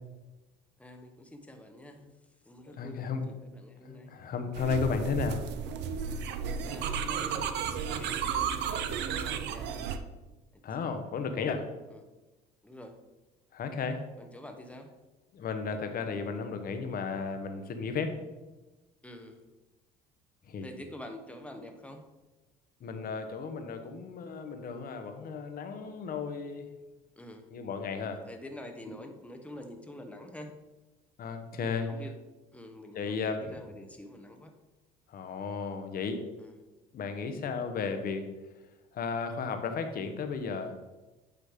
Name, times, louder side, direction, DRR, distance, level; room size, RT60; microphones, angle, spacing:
voice 1, 0.8-2.1 2.4-4.1 6.6-8.7 9.1-9.9 11.9-12.0 12.6-12.9 14.2-14.9 19.0-19.4 20.6-22.1 27.2-27.5 28.3-30.6 31.6-32.1 32.5-34.5 36.4-36.5, left 1 dB, 5° left, 4 dB, 1.1 m, -47 dB
voice 2, 2.7-3.2 3.8-5.4 10.6-11.7 13.5-14.0 15.3-18.1 20.5-20.7 22.8-26.7 27.5-28.2 31.2-31.9 32.9-33.5 35.1-36.2 36.9-38.3 38.9-40.7, left 5 dB, 50° left, 7 dB, 1.0 m, -34 dB
sound 1, 4.5-10.0, right 7 dB, 60° right, 0.6 m, -33 dB
8.8 x 3.2 x 5.0 m, 1.1 s
supercardioid pair, 80°, 20 cm